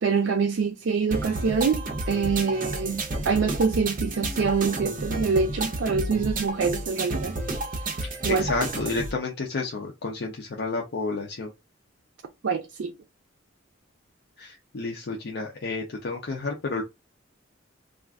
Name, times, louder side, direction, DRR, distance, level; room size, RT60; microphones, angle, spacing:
voice 1, 0.0-7.4 8.2-8.5 12.4-12.9, right 5 dB, 85° right, 0.4 m, -25 dB
sound 1, 1.1-9.1, right 2 dB, 45° right, 0.7 m, -31 dB
voice 2, 8.0-11.5 14.4-16.8, left 3 dB, 60° left, 0.5 m, -31 dB
2.4 x 2.4 x 3.4 m
head